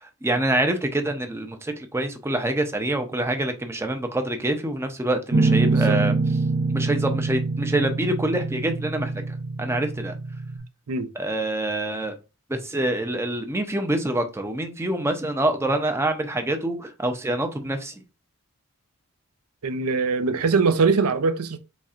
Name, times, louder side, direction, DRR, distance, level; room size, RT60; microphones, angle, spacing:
voice 1, 0.0-6.2 6.7-10.1 11.2-12.1 12.5-17.9, right 1 dB, 10° right, 0.5 m, -26 dB
Guitar, 5.3-10.6, right 3 dB, 45° right, 0.7 m, -24 dB
voice 2, 5.7-6.0 10.9-11.1 19.6-21.6, right 4 dB, 80° right, 0.5 m, -22 dB
4.2 x 3.1 x 2.4 m
head